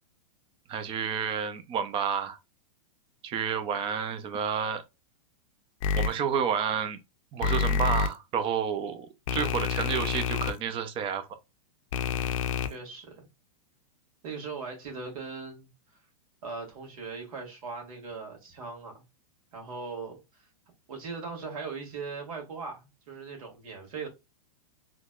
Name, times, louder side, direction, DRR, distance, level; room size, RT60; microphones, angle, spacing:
voice 1, 0.7-2.4 3.2-4.8 5.9-7.0 7.3-9.1 9.3-11.3, right 7 dB, 30° right, 0.7 m, -30 dB
sound 1, 5.8-6.1 7.4-8.1 9.3-10.5 11.9-12.7, left 6 dB, 60° left, 0.6 m, -27 dB
voice 2, 12.7-13.2 14.2-15.7 16.4-19.0 19.5-20.4 20.9-24.1, right 4 dB, 65° right, 2.2 m, -39 dB
3.9 x 3.1 x 2.4 m
hypercardioid pair, 135°, 19 cm